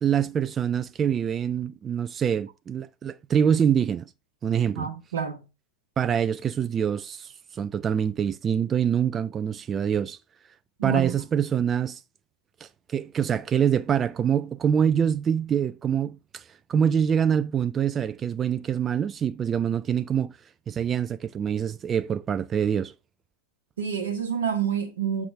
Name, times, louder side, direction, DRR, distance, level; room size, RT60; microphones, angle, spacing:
voice 1, 0.0-4.1 4.4-4.9 6.0-10.2 10.8-12.0 12.6-20.4 20.7-22.9, right 8 dB, 25° right, 0.3 m, -25 dB
voice 2, 4.8-5.4 10.8-11.1 23.8-25.3, right 7 dB, 65° right, 1.0 m, -28 dB
7.8 x 4.7 x 3.3 m
figure-of-eight pair, 90°, 0 cm